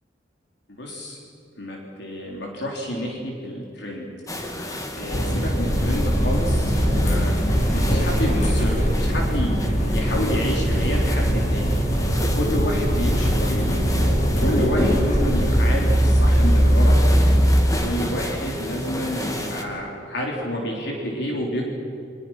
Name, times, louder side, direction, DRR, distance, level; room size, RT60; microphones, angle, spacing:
voice 1, 0.7-1.2 1.6-4.1 5.0-9.6 9.9-11.7 12.3-13.8 14.4-17.0 17.8-21.6, equal, 65° left, -2 dB, 3.9 m, -29 dB
sound 1, 4.3-19.6, left 1 dB, 20° left, 2.3 m, -34 dB
sound 2, 5.1-17.6, equal, 40° left, 4.4 m, -20 dB
30.0 x 25.0 x 5.9 m, 2.9 s
head